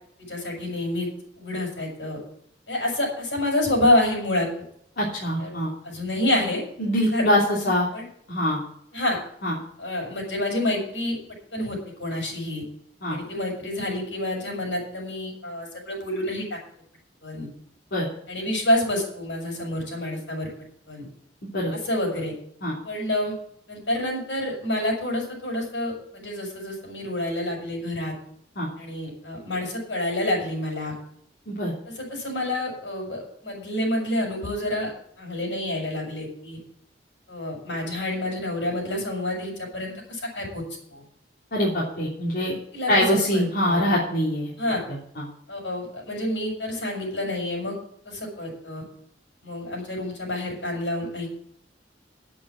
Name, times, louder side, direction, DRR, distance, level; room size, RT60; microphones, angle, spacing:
voice 1, 0.3-1.1 1.4-2.2 2.7-4.5 5.4-5.5 5.8-6.6 7.1-7.3 7.6-8.1 8.9-9.2 9.8-11.2 11.5-12.6 13.1-16.6 17.2-17.5 18.3-20.5 20.9-21.1 21.8-22.3 22.8-23.3 23.7-28.1 28.8-30.9 32.0-34.9 35.2-36.6 37.3-40.6 40.9-41.0 42.7-43.9 44.6-44.8 45.5-47.8 48.0-48.8 49.4-51.3, left 1 dB, 80° left, 0 dB, 6.6 m, -28 dB
voice 2, 5.0-5.7 6.8-7.9 8.3-8.6 9.4-9.5 13.0-13.2 17.9-18.1 21.5-21.7 22.6-22.7 28.5-28.7 31.5-31.7 41.5-42.5 42.9-44.5 45.2-45.3, equal, 60° left, -6 dB, 3.2 m, -23 dB
8.8 x 8.6 x 8.5 m, 0.67 s
head